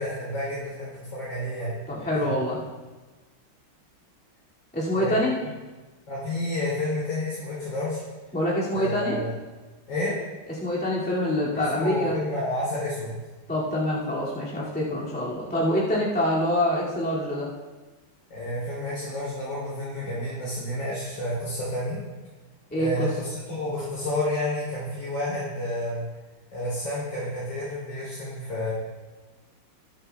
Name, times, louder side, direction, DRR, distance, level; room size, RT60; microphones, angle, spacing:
voice 1, 0.0-1.7 2.1-2.3 4.9-5.2 6.1-8.0 8.7-9.3 9.9-10.2 11.5-13.2 18.3-22.0 22.8-26.0 26.5-28.7, left 1 dB, 65° left, -8 dB, 4.3 m, -30 dB
voice 2, 1.9-2.6 4.7-5.3 8.3-9.2 10.6-12.2 13.5-17.5 22.7-23.1, left 1 dB, 5° left, -8 dB, 2.2 m, -25 dB
19.0 x 8.1 x 2.3 m, 1.2 s
omnidirectional pair, 2.3 m